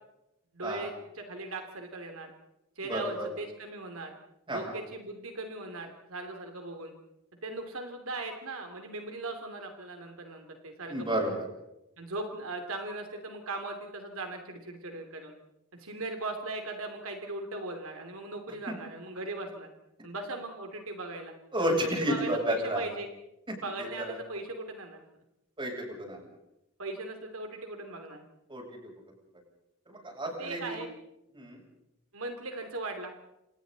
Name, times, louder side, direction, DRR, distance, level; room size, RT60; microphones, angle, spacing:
voice 1, 0.5-2.3 2.8-4.1 4.5-6.9 7.4-11.3 12.0-15.3 15.8-19.7 20.0-21.3 21.6-23.1 23.6-25.0 26.8-28.2 30.2-30.9 32.1-33.1, right 2 dB, 70° right, 4 dB, 2.9 m, -38 dB
voice 2, 2.9-3.3 4.5-4.7 10.9-11.5 18.7-18.8 21.5-22.9 23.8-24.2 25.6-26.3 28.5-28.6 29.9-30.8 31.3-31.6, equal, 25° right, 0 dB, 7.9 m, -31 dB
28.5 x 28.0 x 4.1 m, 0.90 s
head